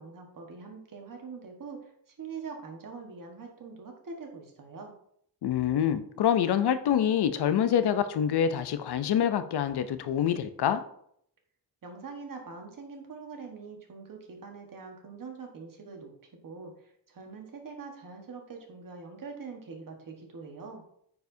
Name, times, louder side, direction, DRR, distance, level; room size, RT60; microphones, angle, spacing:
voice 1, 0.0-1.9 2.2-4.9 11.8-16.1 16.4-20.8, right 4 dB, 50° right, 2 dB, 1.5 m, -43 dB
voice 2, 5.4-10.8, left 9 dB, 65° left, 11 dB, 0.6 m, -26 dB
9.3 x 4.6 x 2.7 m, 0.68 s
wide cardioid pair, 125°, 43 cm